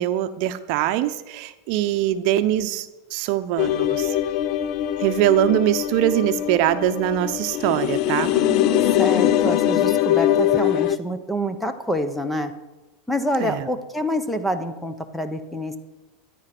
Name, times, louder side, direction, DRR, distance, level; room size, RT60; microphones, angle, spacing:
voice 1, 0.0-4.2 5.0-8.3 13.4-13.6, right 12 dB, 55° right, 10 dB, 0.8 m, -22 dB
sound 1, 3.6-11.0, left 12 dB, 50° left, 0.6 m, -22 dB
voice 2, 8.3-12.5 13.1-15.8, equal, 5° left, 9 dB, 1.1 m, -27 dB
13.0 x 10.0 x 6.0 m, 1.1 s
supercardioid pair, 135°, 0 cm